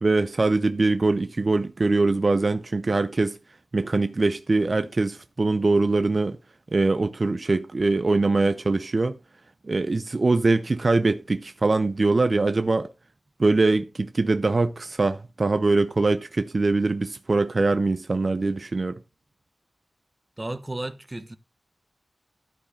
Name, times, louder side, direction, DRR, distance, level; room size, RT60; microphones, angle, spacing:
voice 1, 0.0-3.4 3.7-6.4 6.7-9.2 9.6-12.9 13.4-19.0, right 3 dB, 50° right, 0.6 m, -23 dB
voice 2, 20.4-21.4, right 1 dB, 25° right, 1.1 m, -33 dB
12.0 x 4.8 x 4.9 m
cardioid pair, 45°, 0 cm